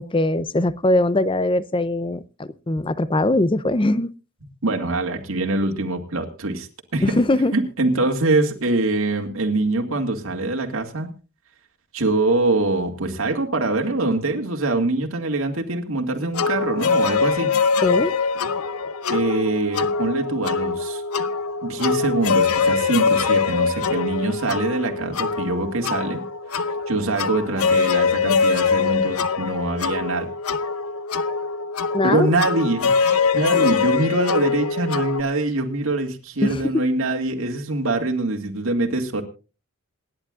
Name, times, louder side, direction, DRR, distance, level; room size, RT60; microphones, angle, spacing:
voice 1, 0.0-4.1 7.0-7.5 17.8-18.1 31.9-32.3 33.5-33.8 36.4-36.8, left 1 dB, 25° left, 0.6 m, -21 dB
voice 2, 4.6-6.7 6.9-7.1 7.5-11.1 11.9-17.5 19.1-21.0 21.6-26.2 26.5-30.3 32.0-39.2, right 2 dB, 70° right, 2.3 m, -24 dB
sound 1, 16.3-35.2, left 5 dB, 90° left, 0.8 m, -23 dB
27.5 x 10.5 x 2.5 m
head